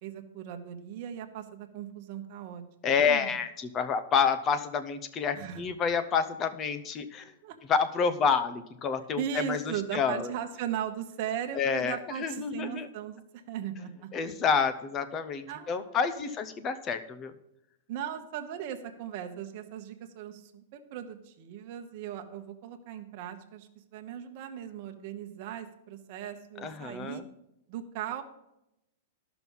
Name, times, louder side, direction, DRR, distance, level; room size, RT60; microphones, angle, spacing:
voice 1, 0.0-2.6 3.0-3.3 5.4-5.6 7.4-7.6 9.2-14.1 15.5-16.3 17.9-27.2 27.7-28.2, right 9 dB, 35° right, 6 dB, 1.1 m, -38 dB
voice 2, 2.8-7.3 7.7-10.3 11.5-12.9 14.1-17.3 26.6-27.3, left 6 dB, 20° left, 11 dB, 0.6 m, -29 dB
13.0 x 6.1 x 5.5 m, 0.85 s
supercardioid pair, 175°, 0 cm